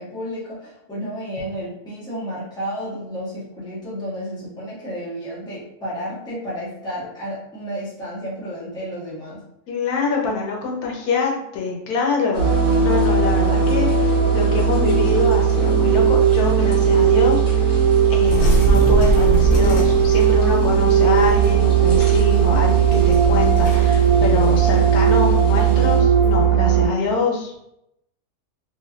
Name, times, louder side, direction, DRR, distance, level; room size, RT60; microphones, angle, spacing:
voice 1, 0.0-9.4, equal, 5° left, -8 dB, 0.8 m, -32 dB
voice 2, 9.7-27.5, left 4 dB, 75° left, 0 dB, 1.2 m, -25 dB
sound 1, 12.3-26.0, right 1 dB, 30° left, 1.4 m, -34 dB
sound 2, 12.4-26.9, right 7 dB, 70° right, 1.2 m, -17 dB
sound 3, 18.2-26.5, right 1 dB, 60° left, 0.8 m, -24 dB
3.1 x 2.7 x 2.4 m, 0.82 s
omnidirectional pair, 1.6 m